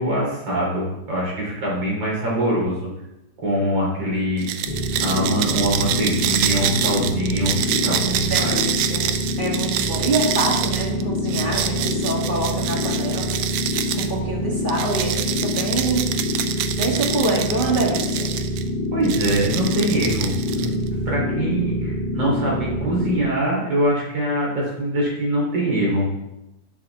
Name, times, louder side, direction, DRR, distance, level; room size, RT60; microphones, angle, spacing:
voice 1, 0.0-2.9 3.4-4.5 5.0-8.6 18.9-26.1, right 1 dB, 55° right, -5 dB, 5.1 m, -23 dB
sound 1, 4.4-14.1 14.7-18.6 19.0-20.9, right 10 dB, 75° right, 1.7 m, -26 dB
sound 2, 4.6-23.2, left 1 dB, 45° left, 2.0 m, -26 dB
voice 2, 8.3-9.0 9.4-13.3 13.9-16.0 16.8-18.3, right 2 dB, 25° right, -1 dB, 1.4 m, -25 dB
10.5 x 10.0 x 3.7 m, 0.90 s
omnidirectional pair, 3.5 m